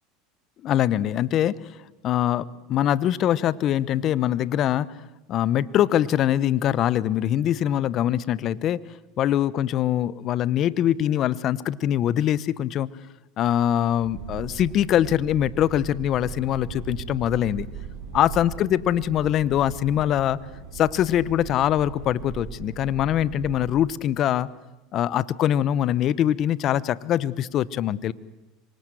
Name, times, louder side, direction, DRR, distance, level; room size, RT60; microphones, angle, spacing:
voice 1, 0.6-1.6 2.0-4.9 5.3-8.8 9.2-12.9 13.4-17.7 18.1-20.4 20.7-24.5 24.9-28.1, left 11 dB, 45° left, 18 dB, 1.0 m, -23 dB
sound 1, 14.0-23.7, right 7 dB, 75° right, 6.2 m, -39 dB
26.0 x 24.0 x 7.8 m, 1.0 s
supercardioid pair, 105°, 0 cm